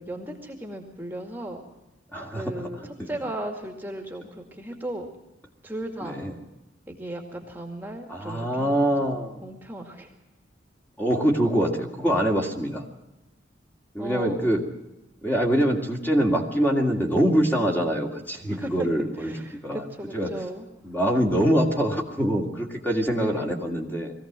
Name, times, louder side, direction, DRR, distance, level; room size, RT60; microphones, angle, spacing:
voice 1, 0.0-1.6 2.3-5.1 5.6-6.2 6.9-10.1 14.0-14.5 18.5-18.9 19.2-20.7 23.1-23.6, right 1 dB, 10° right, 3 dB, 2.1 m, -36 dB
voice 2, 2.1-2.4 6.0-6.3 8.1-9.4 11.0-12.8 13.9-14.6 15.2-19.3 19.6-19.8 20.1-20.3 20.8-24.1, equal, 10° left, 1 dB, 2.5 m, -24 dB
22.0 x 16.0 x 7.5 m, 0.98 s
head